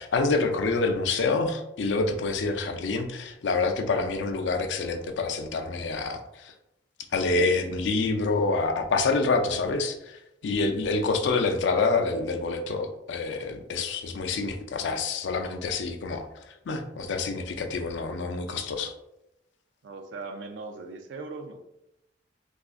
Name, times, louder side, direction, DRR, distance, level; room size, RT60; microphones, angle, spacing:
voice 1, 0.0-6.5 7.1-16.3 16.7-18.9, left 3 dB, 70° left, 6 dB, 0.4 m, -27 dB
voice 2, 19.8-21.6, right 3 dB, 75° right, 7 dB, 0.4 m, -39 dB
3.6 x 2.3 x 2.4 m, 0.86 s
head